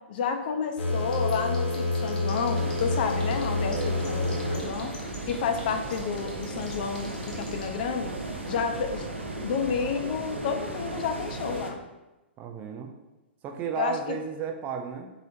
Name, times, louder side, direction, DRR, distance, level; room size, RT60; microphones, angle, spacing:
voice 1, 0.1-4.9 5.3-8.1 8.5-9.1 9.4-11.8 13.8-14.2, left 6 dB, 50° left, 5 dB, 0.3 m, -30 dB
sound 1, 0.8-4.6, left 2 dB, 75° left, 0.8 m, -28 dB
sound 2, 0.9-3.4 3.7-7.6, left 3 dB, 10° left, 0.7 m, -46 dB
sound 3, 2.5-11.7, right 2 dB, 90° right, 0.5 m, -36 dB
voice 2, 3.7-4.8 12.4-12.9 13.4-15.1, right 7 dB, 25° right, 3 dB, 0.3 m, -34 dB
3.8 x 2.0 x 2.6 m, 1.0 s
figure-of-eight pair, 110°, 6 cm